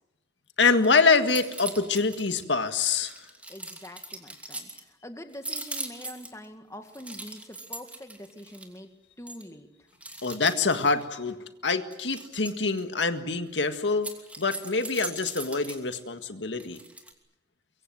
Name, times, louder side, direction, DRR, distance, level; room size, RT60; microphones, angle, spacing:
voice 1, 0.6-3.1 10.2-11.4 11.6-14.1 14.4-16.8, left 4 dB, 85° left, 8 dB, 1.8 m, -25 dB
sound 1, 0.6-0.9 1.2-2.4 2.9-4.8 5.3-6.5 6.9-8.8 9.3-9.4 10.0-11.0 11.9-12.8 13.9-16.0 16.6-17.1, right 2 dB, 10° right, 2.8 m, -40 dB
voice 2, 3.5-8.9 9.2-9.7, left 1 dB, 15° left, 7 dB, 2.0 m, -44 dB
24.0 x 23.5 x 7.8 m, 0.95 s
head